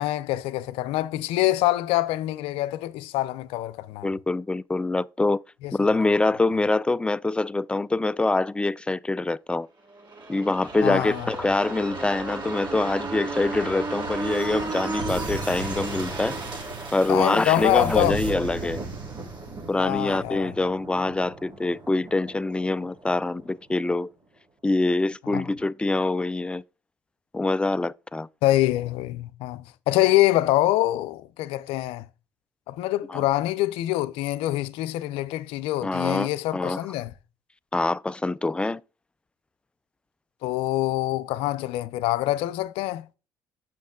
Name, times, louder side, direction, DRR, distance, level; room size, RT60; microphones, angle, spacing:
voice 1, 0.0-4.1 5.6-5.7 10.8-11.3 17.1-18.2 19.8-20.5 25.3-25.4 28.4-32.1 32.7-37.1 40.4-43.1, left 16 dB, 75° left, 0.5 m, -25 dB
voice 2, 4.0-5.4 5.7-9.7 10.3-16.4 16.9-18.8 19.7-24.1 24.6-26.6 27.3-28.3 33.1-33.2 35.8-36.8 37.7-38.8, left 2 dB, 10° left, 0.3 m, -25 dB
sound 1, 10.0-23.5 23.8-23.9, right 3 dB, 50° right, 3.5 m, -34 dB
7.3 x 6.0 x 3.7 m
hypercardioid pair, 60°, 10 cm